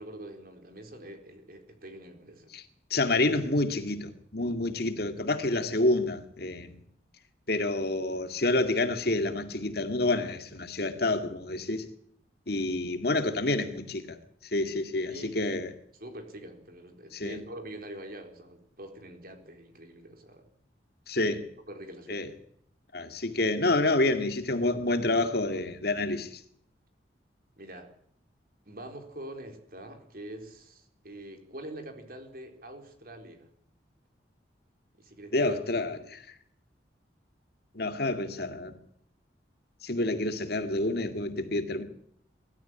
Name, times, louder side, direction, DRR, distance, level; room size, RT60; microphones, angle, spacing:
voice 1, 0.0-2.5 15.1-15.4 15.9-20.5 21.7-22.3 27.5-27.9 28.6-33.5 35.0-35.6, right 1 dB, 50° right, 4.2 m, -44 dB
voice 2, 2.9-6.8 7.5-11.8 12.5-14.2 14.5-15.7 17.1-17.4 21.1-21.4 22.1-22.3 22.9-26.4 35.3-36.2 37.7-38.8 39.8-41.8, left 2 dB, 55° left, 2.2 m, -28 dB
23.0 x 13.5 x 10.0 m
head